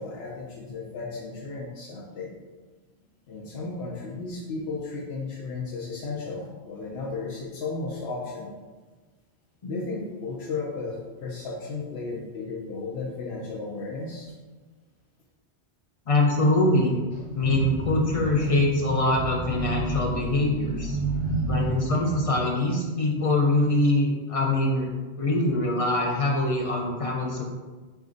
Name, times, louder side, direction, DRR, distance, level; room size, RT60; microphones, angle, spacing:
voice 1, 0.0-2.3 3.3-8.5 9.7-14.3, left 3 dB, 70° left, -3 dB, 0.8 m, -34 dB
voice 2, 16.1-17.1 17.3-21.0 21.5-24.9 25.2-27.5, left 2 dB, 50° left, -1 dB, 0.4 m, -24 dB
sound 1, 17.1-22.2, right 2 dB, 90° left, 1.2 m, -30 dB
4.4 x 2.4 x 3.8 m, 1.3 s
omnidirectional pair, 1.2 m